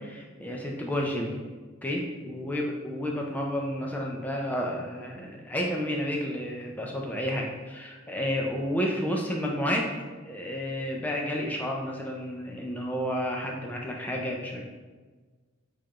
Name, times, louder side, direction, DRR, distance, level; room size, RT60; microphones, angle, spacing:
voice 1, 0.0-1.4 1.8-9.9 10.2-14.6, equal, 10° left, -1 dB, 0.4 m, -31 dB
4.8 x 2.4 x 2.9 m, 1.4 s
head